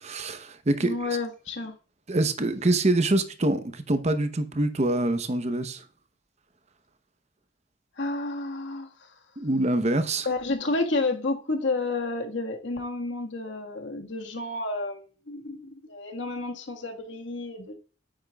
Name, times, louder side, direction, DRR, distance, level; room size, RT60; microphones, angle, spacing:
voice 1, 0.0-0.9 2.1-5.8 9.4-10.3, right 2 dB, 40° right, 0.8 m, -25 dB
voice 2, 0.8-1.7 8.0-8.9 10.2-17.7, left 2 dB, 85° left, 1.6 m, -30 dB
8.9 x 8.9 x 2.3 m
head